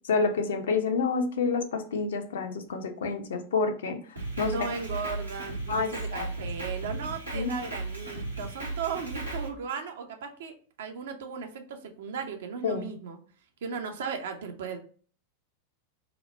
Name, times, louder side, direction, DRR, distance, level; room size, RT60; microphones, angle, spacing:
voice 1, 0.0-4.0 4.4-4.7 5.7-6.3 7.3-7.5 12.6-12.9, left 4 dB, 60° left, 6 dB, 0.5 m, -28 dB
Drum kit, 4.2-9.5, right 2 dB, 80° right, 0.9 m, -35 dB
voice 2, 4.4-13.2 13.6-14.8, right 6 dB, 60° right, 5 dB, 0.5 m, -36 dB
2.9 x 2.1 x 4.0 m, 0.43 s
figure-of-eight pair, 90°, 0 cm